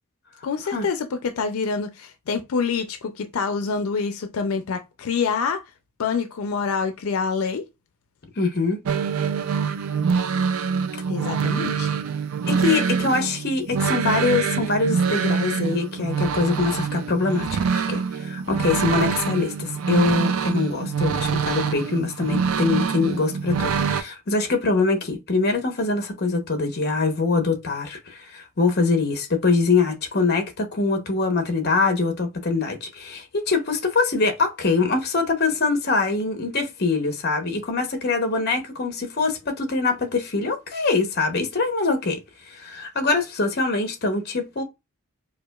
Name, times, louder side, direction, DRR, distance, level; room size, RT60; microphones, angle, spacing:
voice 1, 0.4-5.6 6.0-7.6 11.1-11.9, left 5 dB, 85° left, 0.4 m, -26 dB
voice 2, 8.4-8.8 12.5-42.2 42.5-44.6, left 3 dB, 50° left, 0.8 m, -23 dB
sound 1, 8.8-24.0, right 6 dB, 85° right, 0.4 m, -25 dB
4.8 x 2.2 x 2.3 m
head